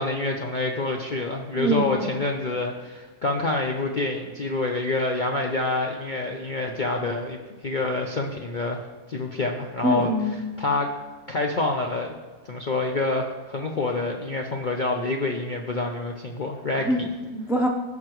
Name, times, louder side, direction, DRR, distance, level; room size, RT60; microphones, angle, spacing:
voice 1, 0.0-8.8 9.1-10.1 10.6-10.9 11.3-12.1 12.5-16.9, left 2 dB, 50° left, 1 dB, 0.6 m, -27 dB
voice 2, 1.6-2.2 9.8-10.4 16.8-17.7, equal, 5° right, 3 dB, 0.4 m, -25 dB
15.5 x 5.8 x 3.1 m, 1.4 s
omnidirectional pair, 1.6 m